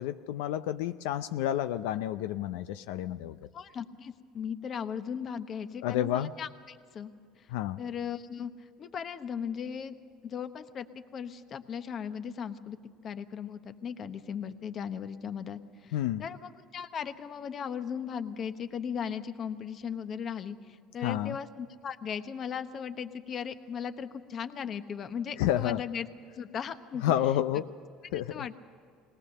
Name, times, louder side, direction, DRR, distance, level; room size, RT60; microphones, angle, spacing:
voice 1, 0.0-3.4 5.8-6.3 7.5-7.8 15.9-16.2 21.0-21.4 25.4-25.8 27.0-27.7 28.1-28.5, left 12 dB, 90° left, 11 dB, 0.5 m, -30 dB
voice 2, 3.5-7.1 7.4-7.5 7.8-10.0 10.2-10.9 11.1-12.8 13.0-26.1 26.4-27.1 28.1-28.5, left 7 dB, 40° left, 10 dB, 1.0 m, -37 dB
21.5 x 18.5 x 6.6 m, 2.2 s
cardioid pair, 120°, 0 cm